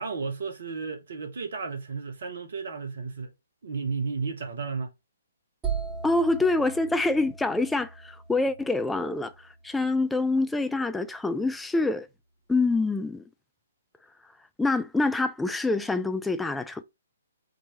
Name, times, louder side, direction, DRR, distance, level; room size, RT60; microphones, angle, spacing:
voice 1, 0.0-3.3 3.6-4.9, right 4 dB, 55° right, 1.2 m, -33 dB
sound 1, 5.6-9.4, right 6 dB, 15° right, 1.5 m, -37 dB
voice 2, 6.0-9.3 9.6-12.1 12.5-13.2 14.6-16.8, left 2 dB, 5° left, 0.4 m, -26 dB
5.2 x 2.9 x 3.0 m
figure-of-eight pair, 125°, 0 cm